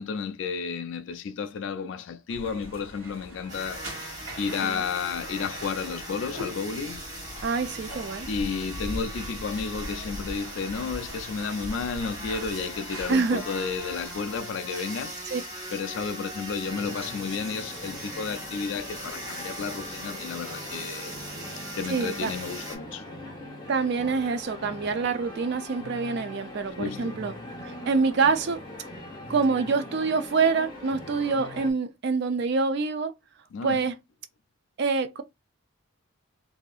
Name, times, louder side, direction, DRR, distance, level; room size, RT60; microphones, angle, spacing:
voice 1, 0.0-3.9 4.4-7.0 8.3-15.1 15.7-21.2 21.6-23.0 26.8-27.2 33.5-33.9, left 5 dB, 55° left, 0.3 m, -32 dB
sound 1, 2.3-14.4, equal, 80° right, 1.5 m, -41 dB
sound 2, 3.5-22.8, right 1 dB, 20° right, 0.8 m, -40 dB
voice 2, 7.4-8.3 13.1-13.4 15.3-15.4 21.9-22.3 23.7-27.3 27.6-28.6 29.3-33.1 33.6-33.9 34.8-35.2, right 4 dB, 50° right, 0.4 m, -26 dB
sound 3, 16.6-31.7, left 1 dB, 20° left, 0.7 m, -41 dB
2.7 x 2.4 x 2.3 m
head